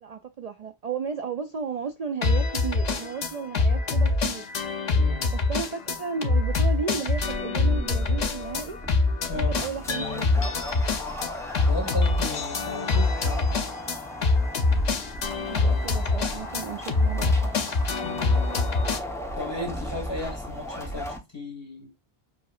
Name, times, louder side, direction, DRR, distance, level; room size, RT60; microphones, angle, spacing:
voice 1, 0.0-4.4 5.3-8.8 9.3-10.5 15.4-17.5, right 6 dB, 55° right, 0.4 m, -34 dB
sound 1, 2.2-19.0, left 3 dB, 50° left, 0.7 m, -25 dB
voice 2, 4.9-5.3 9.3-9.6 11.6-13.7 18.0-18.3 19.4-21.9, left 2 dB, 25° left, 1.8 m, -35 dB
sound 2, 7.2-21.2, left 1 dB, 5° left, 0.8 m, -37 dB
6.8 x 2.8 x 2.4 m
omnidirectional pair, 1.0 m